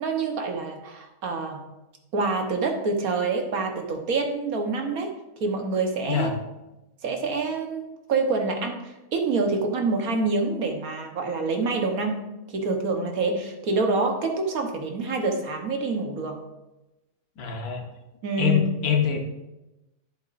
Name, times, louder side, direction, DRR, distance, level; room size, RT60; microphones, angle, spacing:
voice 1, 0.0-1.6 2.1-5.1 5.4-6.3 7.0-12.3 12.5-16.4 18.2-18.6, right 3 dB, 75° right, 4 dB, 1.6 m, -26 dB
voice 2, 17.4-17.8 18.4-19.2, left 7 dB, 90° left, 3 dB, 1.6 m, -24 dB
10.5 x 7.9 x 2.6 m, 0.97 s
omnidirectional pair, 1.5 m